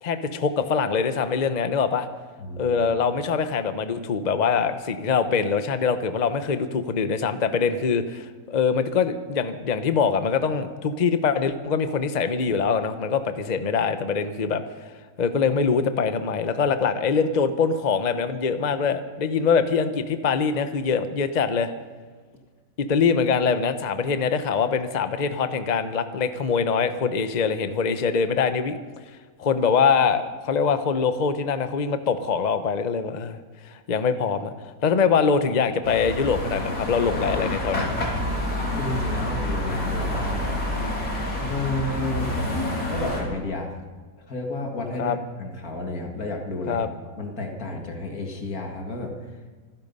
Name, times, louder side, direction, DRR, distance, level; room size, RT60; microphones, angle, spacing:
voice 1, 0.0-2.1 2.6-14.6 15.2-21.7 22.8-28.8 29.4-33.4 33.6-34.5 34.8-37.9 45.0-45.2 46.7-46.9, left 5 dB, 35° left, 10 dB, 0.8 m, -23 dB
voice 2, 2.4-2.8 38.8-40.5 41.4-42.3 42.9-43.8 44.2-46.9 47.2-49.4, left 2 dB, 70° left, 2 dB, 2.5 m, -31 dB
sound 1, 35.8-43.2, left 1 dB, 85° left, 4.0 m, -28 dB
25.5 x 10.5 x 5.5 m, 1.5 s
omnidirectional pair, 1.6 m